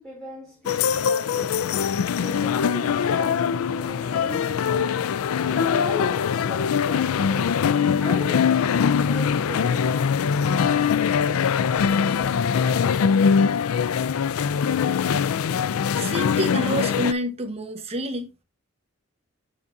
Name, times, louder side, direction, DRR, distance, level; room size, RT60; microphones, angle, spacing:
voice 1, 0.0-7.7 7.9-10.4, left 1 dB, 5° left, 3.0 m, -38 dB
sound 1, 0.7-17.1, left 7 dB, 85° left, 0.4 m, -22 dB
voice 2, 16.0-18.4, right 1 dB, 30° right, 1.2 m, -28 dB
7.2 x 7.0 x 2.6 m
head